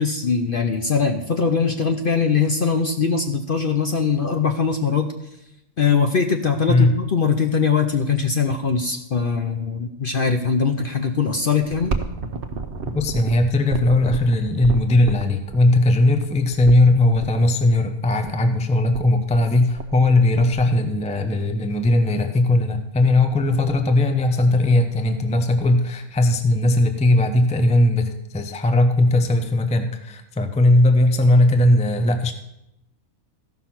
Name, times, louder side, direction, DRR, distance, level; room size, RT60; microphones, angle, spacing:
voice 1, 0.0-5.1 5.8-11.9, left 5 dB, 55° left, 6 dB, 0.6 m, -21 dB
sound 1, 11.6-17.3 18.2-18.3 18.6-18.7 18.9-19.4 19.8-20.1 20.4-21.3 21.8-22.0 22.4-22.6 23.0-23.1 23.3-23.9 24.4-25.2 25.6-25.7 26.6-26.7, right 4 dB, 45° right, 0.8 m, -31 dB
voice 2, 12.9-32.3, left 2 dB, 10° left, 7 dB, 0.3 m, -18 dB
14.0 x 5.7 x 5.9 m, 0.85 s
omnidirectional pair, 1.5 m